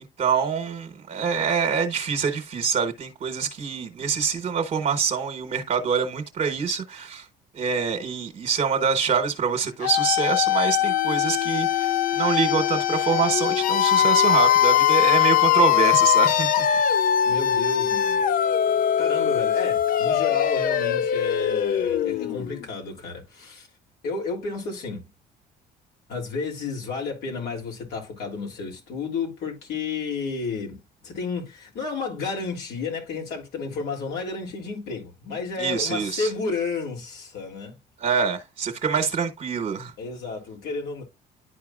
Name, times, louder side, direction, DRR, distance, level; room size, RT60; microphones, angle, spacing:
voice 1, 0.2-7.3 7.5-16.7 35.6-36.3 38.0-39.9, right 6 dB, 45° right, 1.1 m, -25 dB
sound 1, 9.8-22.6, left 10 dB, 55° left, 0.5 m, -21 dB
voice 2, 17.3-18.2 19.0-23.7 24.0-25.0 26.1-37.8 40.0-41.0, left 4 dB, 80° left, 3.0 m, -32 dB
11.5 x 4.5 x 2.4 m
cardioid pair, 110°, 17 cm